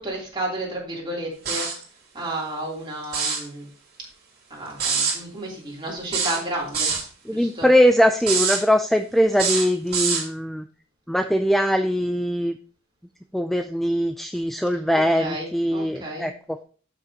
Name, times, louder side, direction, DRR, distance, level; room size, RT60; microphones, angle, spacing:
voice 1, 0.0-1.7 2.1-3.7 4.5-7.0 7.3-7.7 14.9-16.3, right 1 dB, 25° right, -4 dB, 3.2 m, -32 dB
sound 1, 1.5-1.8 3.0-3.5 4.8-5.2 6.1-7.1 8.2-8.6 9.3-10.3, right 5 dB, 50° right, 2.6 m, -24 dB
voice 2, 7.3-10.6 11.1-12.5 13.3-16.6, equal, ahead, 7 dB, 0.3 m, -21 dB
12.0 x 6.1 x 2.9 m, 0.42 s
head